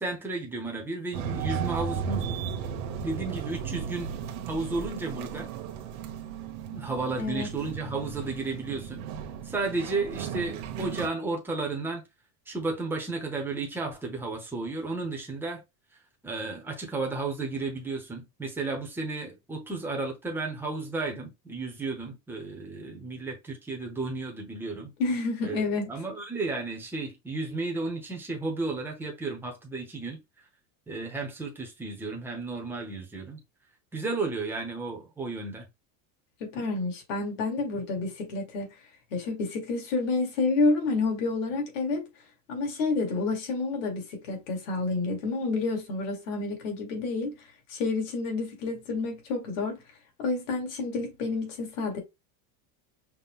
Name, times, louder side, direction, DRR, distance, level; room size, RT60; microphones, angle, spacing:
voice 1, 0.0-2.4 3.0-4.1 4.5-5.5 6.7-9.0 9.4-12.0 12.5-15.6 16.2-24.9 25.4-30.2 30.9-33.4 33.9-35.7, right 3 dB, 5° right, 0.7 m, -33 dB
sound 1, 1.1-11.1, right 7 dB, 60° right, 1.0 m, -35 dB
voice 2, 7.2-7.5 25.0-25.9 36.4-38.7 39.1-42.0 42.5-47.4 47.7-49.8 50.2-52.0, left 3 dB, 60° left, 1.9 m, -29 dB
5.9 x 2.1 x 3.6 m
supercardioid pair, 175°, 42 cm